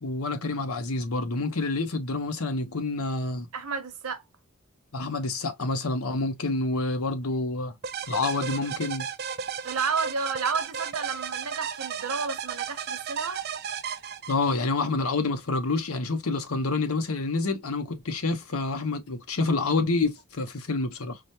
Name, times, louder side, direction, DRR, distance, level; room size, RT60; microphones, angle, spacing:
voice 1, 0.0-3.5 4.9-7.8 8.1-9.1 14.3-21.2, left 3 dB, 70° left, 0.8 m, -28 dB
voice 2, 3.5-4.2 9.6-13.4, right 5 dB, 70° right, 0.9 m, -31 dB
sound 1, 7.8-14.7, right 7 dB, 45° right, 0.4 m, -34 dB
4.8 x 2.2 x 2.8 m
head